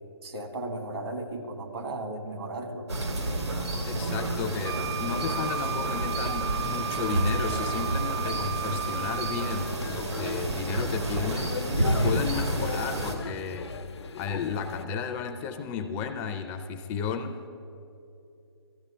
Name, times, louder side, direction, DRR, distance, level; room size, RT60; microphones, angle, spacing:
voice 1, 0.2-2.9, right 2 dB, 70° right, 5 dB, 1.7 m, -35 dB
sound 1, 2.9-13.1, right 1 dB, 85° right, 1.9 m, -30 dB
voice 2, 3.8-11.5 12.0-13.7 14.2-17.5, left 6 dB, 15° left, 7 dB, 0.4 m, -33 dB
Wind instrument woodwind instrument, 4.6-9.8, right 8 dB, 50° right, 0.7 m, -34 dB
sound 2, 9.6-14.8, left 5 dB, 90° left, 0.6 m, -38 dB
13.5 x 9.7 x 5.5 m, 2.8 s
hypercardioid pair, 150°, 14 cm